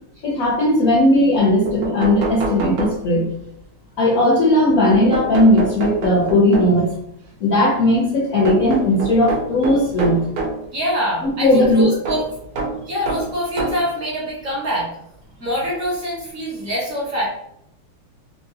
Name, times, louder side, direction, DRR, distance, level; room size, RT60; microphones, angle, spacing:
voice 1, 0.2-3.3 4.0-6.9 7.4-10.2 11.2-11.9, left 1 dB, 70° left, -4 dB, 0.8 m, -17 dB
sound 1, 1.3-1.4 1.6-3.4 4.9-7.0 8.4-10.7 12.0-13.9 14.8-14.9 16.2-16.3 16.6-16.7, right 3 dB, 85° right, 0.8 m, -27 dB
voice 2, 10.7-12.2 12.9-14.9 15.4-17.3, equal, 55° right, -5 dB, 1.0 m, -24 dB
3.6 x 2.2 x 2.7 m, 0.74 s
omnidirectional pair, 2.3 m